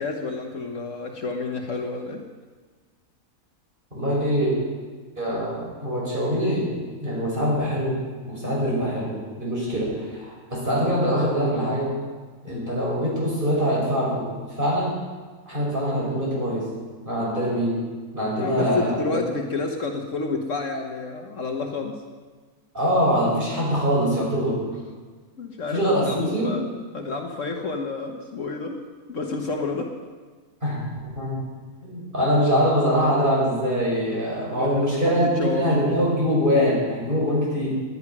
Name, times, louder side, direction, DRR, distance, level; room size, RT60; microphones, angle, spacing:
voice 1, 0.0-2.2 12.5-12.8 18.4-22.0 25.4-26.6 26.9-28.8 29.1-29.9 34.6-36.0, left 3 dB, 55° left, 3 dB, 1.5 m, -30 dB
voice 2, 3.9-4.5 5.2-6.7 7.0-8.0 8.3-11.9 12.4-14.9 15.5-16.7 17.0-17.8 18.1-19.2 22.7-24.6 25.7-26.5 30.6-31.4 31.8-37.7, equal, 35° right, -5 dB, 6.2 m, -23 dB
17.5 x 11.0 x 6.0 m, 1.4 s
omnidirectional pair, 1.6 m